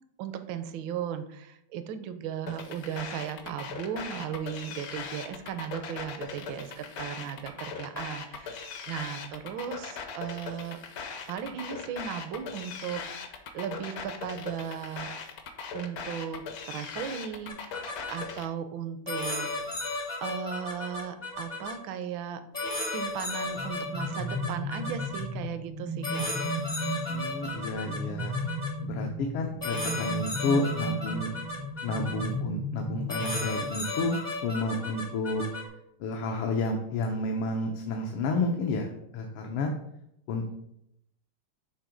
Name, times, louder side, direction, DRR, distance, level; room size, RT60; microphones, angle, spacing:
voice 1, 0.2-10.8 11.3-15.1 15.7-19.5 20.2-22.4 22.9-26.3, right 8 dB, 75° right, 10 dB, 1.3 m, -36 dB
sound 1, 2.5-18.5, left 6 dB, 65° left, 0.9 m, -39 dB
sound 2, 17.5-18.2 19.1-21.7 22.5-25.2 26.0-28.7 29.6-32.3 33.1-35.7, left 2 dB, 40° left, 0.5 m, -34 dB
sound 3, 23.5-33.9, equal, 90° right, 2.1 m, -35 dB
voice 2, 27.1-28.4 28.8-31.3 31.8-35.4 36.0-39.7 40.3-40.5, left 2 dB, 85° left, 2 dB, 1.6 m, -31 dB
7.4 x 2.9 x 5.0 m, 0.77 s
omnidirectional pair, 2.4 m